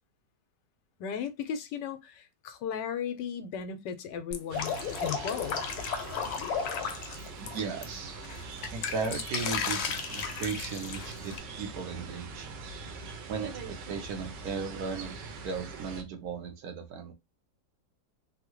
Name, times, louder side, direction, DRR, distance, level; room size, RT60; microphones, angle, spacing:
voice 1, 1.0-5.6, left 7 dB, 90° left, 1.3 m, -36 dB
Drip, 4.3-7.8 8.2-11.4, left 6 dB, 70° left, 1.1 m, -34 dB
sound 1, 4.5-16.0, right 4 dB, 85° right, 1.3 m, -42 dB
voice 2, 7.4-8.1 8.7-12.5 13.3-15.1 15.4-17.1, right 5 dB, 70° right, 1.2 m, -36 dB
3.6 x 2.1 x 2.9 m
omnidirectional pair, 1.9 m